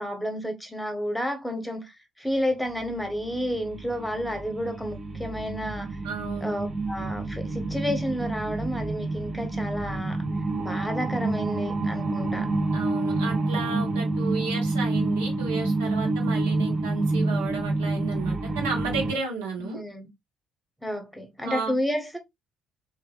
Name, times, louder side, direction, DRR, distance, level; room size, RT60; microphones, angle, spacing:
voice 1, 0.0-6.0 6.4-10.2 10.6-12.5 19.6-20.1 20.8-22.2, equal, 5° left, 1.0 m, -31 dB
sound 1, 2.5-19.1, right 2 dB, 35° right, 1.4 m, -28 dB
voice 2, 6.0-6.6 12.7-19.8 21.4-21.8, right 4 dB, 75° right, 0.9 m, -33 dB
2.9 x 2.6 x 2.4 m
figure-of-eight pair, 50°, 0 cm